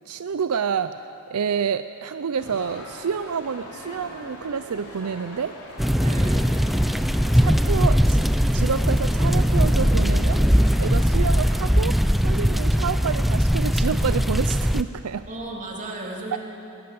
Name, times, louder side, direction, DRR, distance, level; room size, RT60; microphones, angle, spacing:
voice 1, 0.0-5.6 7.3-8.2 8.5-10.5 10.8-15.3, right 6 dB, 80° right, 11 dB, 0.5 m, -28 dB
sound 1, 2.4-11.8, left 1 dB, 75° left, 4.4 m, -42 dB
sound 2, 5.8-14.8, equal, ahead, 0.5 m, -20 dB
voice 2, 6.0-6.5 15.3-16.4, right 2 dB, 35° right, -2 dB, 3.3 m, -34 dB
20.5 x 20.0 x 7.7 m, 3.0 s
head